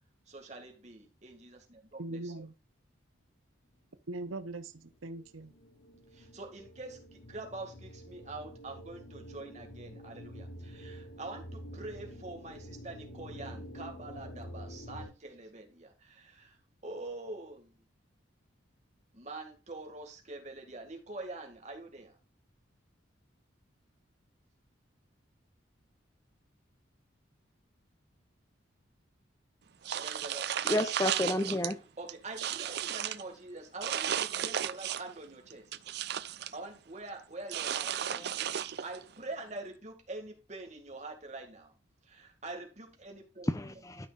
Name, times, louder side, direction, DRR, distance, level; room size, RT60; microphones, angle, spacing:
voice 1, 0.3-2.3 6.1-16.6 16.8-17.8 19.1-22.2 30.0-30.5 32.0-35.7 36.5-38.3 38.6-41.7 42.1-43.5, right 2 dB, 35° right, 1.9 m, -45 dB
voice 2, 2.0-2.5 4.1-5.5, right 2 dB, 85° right, 0.8 m, -40 dB
sound 1, 4.7-15.1, equal, 75° left, 3.6 m, -48 dB
sound 2, 29.8-31.7 32.1-33.2 33.8-35.2 35.5-36.6 37.5-39.0, right 9 dB, 55° right, 0.4 m, -34 dB
voice 3, 30.6-31.8 37.9-38.3 43.4-44.1, left 1 dB, 15° left, 0.6 m, -31 dB
13.0 x 5.7 x 2.4 m
head